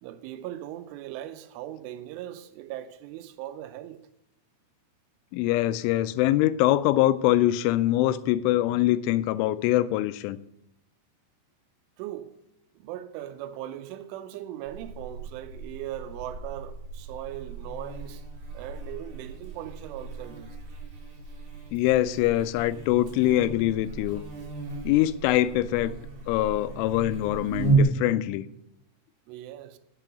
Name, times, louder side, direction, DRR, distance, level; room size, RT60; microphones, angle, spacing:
voice 1, 0.0-4.1 12.0-12.3 12.7-18.2 18.5-20.6 29.3-29.8, right 12 dB, 85° right, 3.2 m, -39 dB
voice 2, 5.3-10.4 21.7-24.2 24.8-26.0 26.3-28.4, left 14 dB, 90° left, 3.0 m, -23 dB
Buzz, 14.7-27.8, right 4 dB, 50° right, 3.4 m, -34 dB
9.9 x 7.5 x 6.8 m
omnidirectional pair, 5.5 m